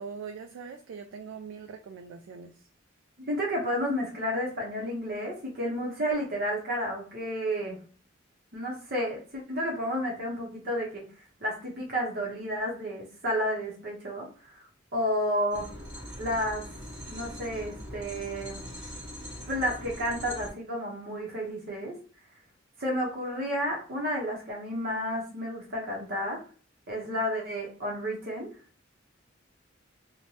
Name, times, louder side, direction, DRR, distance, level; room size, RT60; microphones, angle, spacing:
voice 1, 0.0-2.7, right 6 dB, 85° right, 6 dB, 0.3 m, -42 dB
voice 2, 3.2-7.8 8.5-11.0 11.4-14.6 14.9-15.7 16.2-16.6 17.1-18.6 19.5-21.9 22.8-26.4 26.9-28.5, equal, 50° right, -2 dB, 0.8 m, -31 dB
sound 1, 15.5-20.5, equal, 15° right, 1.5 m, -42 dB
3.1 x 2.1 x 2.7 m, 0.40 s
head